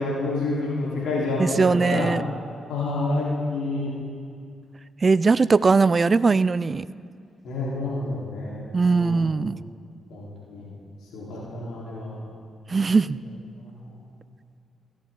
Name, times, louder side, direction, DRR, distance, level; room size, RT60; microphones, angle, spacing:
voice 1, 0.0-2.1 2.7-3.9 7.4-9.3 10.1-10.7 11.1-12.2 13.6-13.7, left 2 dB, 75° left, -6 dB, 3.7 m, -28 dB
voice 2, 1.4-2.2 5.0-6.8 8.7-9.6 12.7-13.2, right 4 dB, 40° right, 18 dB, 0.3 m, -20 dB
17.5 x 13.5 x 3.8 m, 2.2 s
hypercardioid pair, 45°, 0 cm